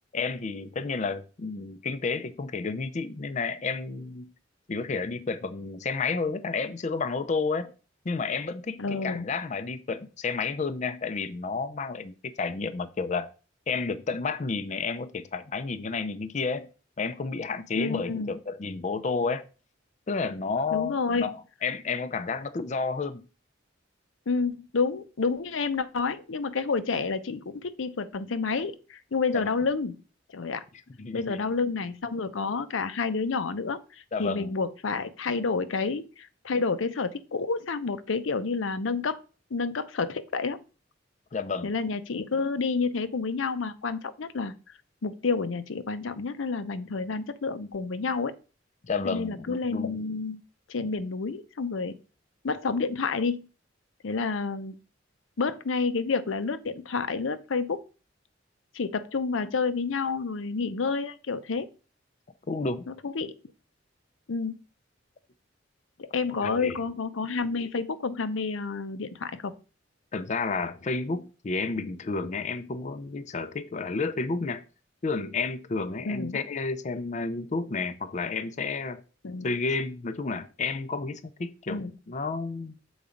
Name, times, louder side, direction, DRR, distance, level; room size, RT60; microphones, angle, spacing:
voice 1, 0.1-4.3 4.7-7.7 8.1-13.3 13.7-16.7 17.0-19.4 20.1-23.2 29.3-29.5 31.0-31.4 34.1-34.5 41.3-41.7 48.8-50.0 62.5-62.9 66.4-66.8 70.1-74.6 75.0-79.0 79.4-82.7, left 4 dB, 35° left, 0.4 m, -31 dB
voice 2, 8.8-9.3 17.7-18.3 20.7-21.3 24.3-29.9 30.3-30.6 31.1-39.2 39.5-40.6 41.6-44.5 45.0-48.3 49.0-50.4 50.7-52.0 52.4-53.4 54.0-54.8 55.4-57.8 58.7-61.7 62.9-63.3 64.3-64.6 66.0-69.5 76.1-76.4 79.2-79.5 81.7-81.9, left 4 dB, 90° left, 0.6 m, -29 dB
7.0 x 4.0 x 5.0 m
head